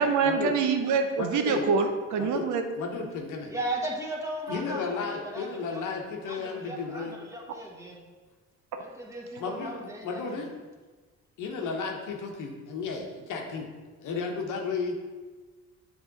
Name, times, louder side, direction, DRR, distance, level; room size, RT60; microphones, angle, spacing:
voice 1, 0.0-2.6, right 5 dB, 75° right, 6 dB, 0.7 m, -25 dB
voice 2, 1.2-1.6 2.2-2.5 2.8-3.5 4.5-7.1 9.4-10.5 11.4-13.7 14.0-15.0, left 4 dB, 80° left, 1 dB, 1.1 m, -33 dB
voice 3, 3.5-5.1 5.3-5.8 6.2-8.0 8.8-10.5, right 1 dB, 10° right, -3 dB, 1.4 m, -36 dB
7.6 x 3.4 x 4.0 m, 1.3 s
cardioid pair, 90°, 30 cm